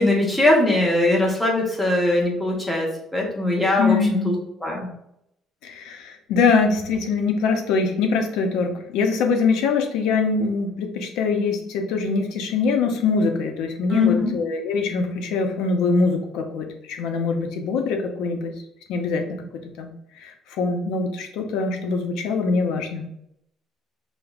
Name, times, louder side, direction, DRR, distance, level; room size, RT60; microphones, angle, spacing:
voice 1, 0.0-4.0 4.2-4.3 4.6-4.9 13.9-14.3, left 2 dB, 5° left, -2 dB, 0.8 m, -21 dB
voice 2, 3.8-4.3 5.6-18.5 18.9-19.2 19.8-19.9 20.2-23.0, left 4 dB, 90° left, 4 dB, 0.6 m, -23 dB
4.9 x 2.1 x 2.4 m, 0.77 s
cardioid pair, 165°, 0 cm